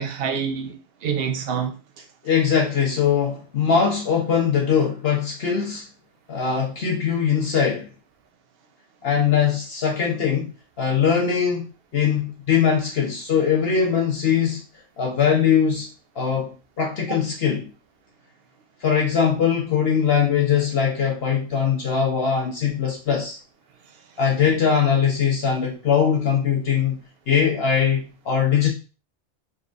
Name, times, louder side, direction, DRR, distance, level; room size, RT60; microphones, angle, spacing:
voice 1, 0.0-2.0, right 7 dB, 60° right, 0.9 m, -27 dB
voice 2, 2.2-5.8 6.3-7.9 9.0-11.7 11.9-14.6 15.0-15.9 16.1-17.7 18.8-23.4 24.2-27.0 27.3-28.7, left 7 dB, 60° left, 1.1 m, -21 dB
4.9 x 3.2 x 2.5 m
omnidirectional pair, 1.2 m